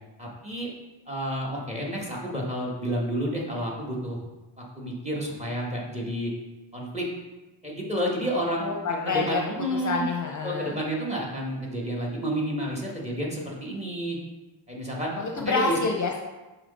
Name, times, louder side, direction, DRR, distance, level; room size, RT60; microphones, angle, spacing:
voice 1, 0.2-0.7 1.1-4.2 4.6-6.3 6.7-7.1 7.6-10.1 10.4-14.2 14.7-15.1 15.4-15.8, equal, 15° right, -3 dB, 1.3 m, -30 dB
voice 2, 8.6-9.4 9.7-10.8 15.2-16.2, left 4 dB, 40° left, 1 dB, 0.6 m, -28 dB
6.0 x 4.0 x 4.1 m, 1.1 s
wide cardioid pair, 130°, 46 cm